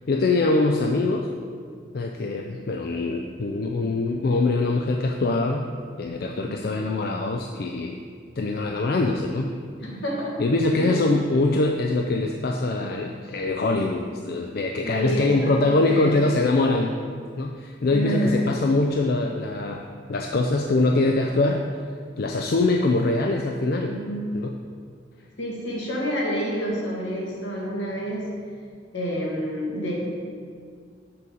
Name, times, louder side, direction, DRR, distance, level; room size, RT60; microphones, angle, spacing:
voice 1, 0.1-1.3 1.9-5.7 6.0-8.0 8.4-9.5 10.4-16.9 17.4-21.6 22.2-23.9 24.3-24.5, left 2 dB, 55° left, 2 dB, 0.4 m, -23 dB
voice 2, 9.8-10.4 10.7-11.0 14.8-16.1 17.9-18.4 23.9-24.3 25.4-28.3 28.9-30.1, equal, 80° left, -3 dB, 1.7 m, -28 dB
5.8 x 5.3 x 6.2 m, 2.1 s
head